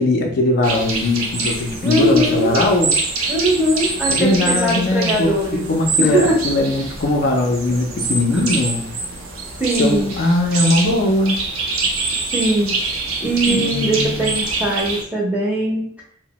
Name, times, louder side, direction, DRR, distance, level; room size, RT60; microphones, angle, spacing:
voice 1, 0.0-2.9 4.1-8.8 9.8-11.4 13.5-14.3, left 2 dB, 50° left, 2 dB, 0.4 m, -19 dB
sound 1, 0.6-15.0, right 3 dB, 90° right, 0.6 m, -25 dB
voice 2, 1.8-2.7 3.3-5.7 6.0-6.4 8.3-8.4 9.6-10.2 12.3-12.9 13.2-15.9, right 1 dB, 5° right, -4 dB, 0.6 m, -20 dB
2.8 x 2.0 x 2.9 m, 0.66 s
head